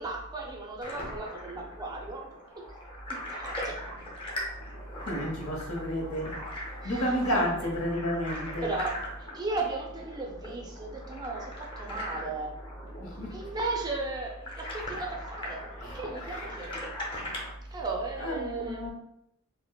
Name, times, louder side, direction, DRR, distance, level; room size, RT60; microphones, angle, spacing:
voice 1, 0.0-2.3 2.5-2.6 3.1-3.8 6.8-7.5 8.6-9.0 9.3-12.6 13.3-16.8 17.7-18.8, right 3 dB, 20° right, 0 dB, 0.4 m, -36 dB
sound 1, 0.8-17.5, left 1 dB, 25° left, 0.7 m, -40 dB
voice 2, 5.0-6.4 6.8-8.7 13.0-13.4 14.9-15.0 15.8-16.0 18.2-18.9, equal, 85° left, 0 dB, 0.8 m, -31 dB
4.2 x 2.0 x 2.2 m, 0.80 s
head